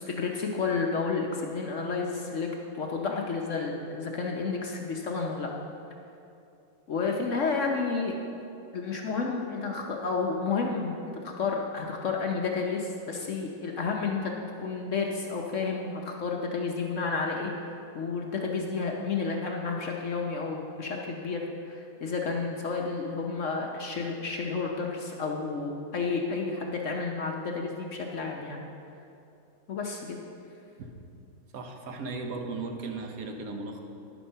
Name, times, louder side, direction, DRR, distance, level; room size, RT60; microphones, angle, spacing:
voice 1, 0.0-2.5 2.7-5.5 6.9-8.2 8.7-11.0 11.2-14.3 14.6-28.6 29.7-30.2, left 4 dB, 55° left, 0 dB, 0.9 m, -31 dB
voice 2, 31.5-33.8, right 3 dB, 60° right, 4 dB, 1.2 m, -36 dB
10.5 x 7.5 x 5.5 m, 2.6 s
omnidirectional pair, 2.0 m